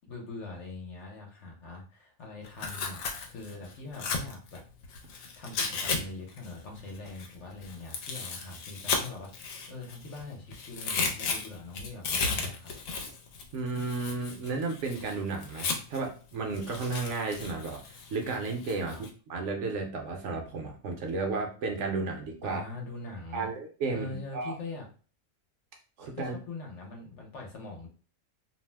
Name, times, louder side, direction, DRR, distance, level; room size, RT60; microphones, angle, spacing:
voice 1, 0.1-4.6 5.4-12.7 18.9-19.0 22.4-23.5 23.9-24.8 26.1-27.9, left 3 dB, 65° left, 0 dB, 1.0 m, -42 dB
Tearing, 2.4-6.0 6.3-10.2 10.5-16.1 16.5-19.1, left 4 dB, 90° left, 1.0 m, -35 dB
voice 2, 13.5-22.6 23.3-24.5 26.0-26.3, right 3 dB, 65° right, 2 dB, 0.9 m, -33 dB
2.6 x 2.0 x 3.2 m, 0.39 s
omnidirectional pair, 1.4 m